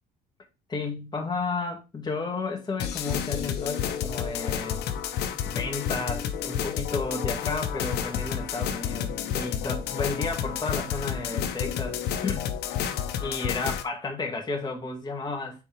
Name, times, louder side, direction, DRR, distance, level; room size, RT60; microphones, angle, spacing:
voice 1, 0.7-4.9 5.5-12.5 13.2-15.6, left 3 dB, 25° left, 2.3 m, -32 dB
sound 1, 2.8-13.8, left 9 dB, 80° left, 1.0 m, -30 dB
6.9 x 4.6 x 3.6 m
cardioid pair, 110°, 17 cm